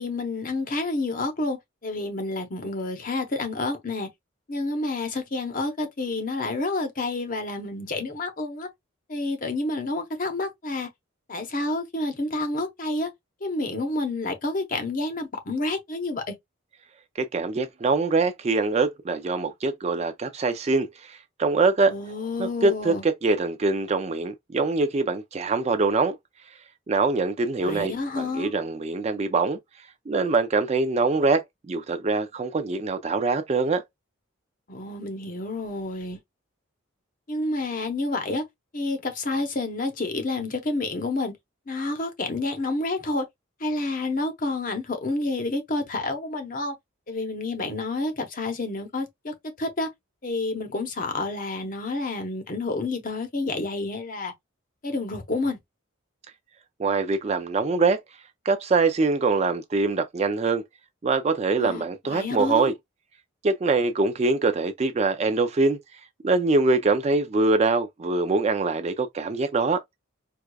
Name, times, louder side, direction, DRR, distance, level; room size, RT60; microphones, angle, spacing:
voice 1, 0.0-4.1 4.5-8.7 9.1-10.9 11.3-13.1 13.4-16.3 21.9-23.0 27.6-28.5 34.7-36.2 37.3-38.4 38.7-41.3 41.7-43.3 43.6-46.7 47.1-49.9 50.2-54.3 54.8-55.6 61.6-62.7, left 2 dB, 40° left, 0.8 m, -29 dB
voice 2, 17.2-21.9 22.4-26.2 26.9-29.6 30.1-33.8 56.8-58.0 58.4-60.6 61.0-62.7 63.4-65.8 66.2-69.8, right 3 dB, 30° right, 0.3 m, -24 dB
4.7 x 2.3 x 2.2 m
head